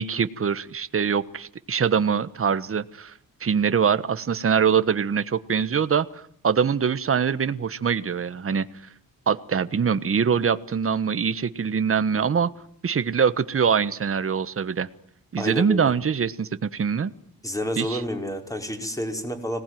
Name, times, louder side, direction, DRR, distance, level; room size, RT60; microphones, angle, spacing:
voice 1, 0.0-3.1 3.4-8.7 9.3-12.5 12.8-14.9 15.3-17.1 17.8-18.0, right 6 dB, 40° right, 13 dB, 1.4 m, -23 dB
voice 2, 15.4-15.9 17.4-19.6, equal, 10° left, 4 dB, 5.4 m, -29 dB
26.0 x 19.0 x 9.4 m, 0.65 s
cardioid pair, 100°, 35 cm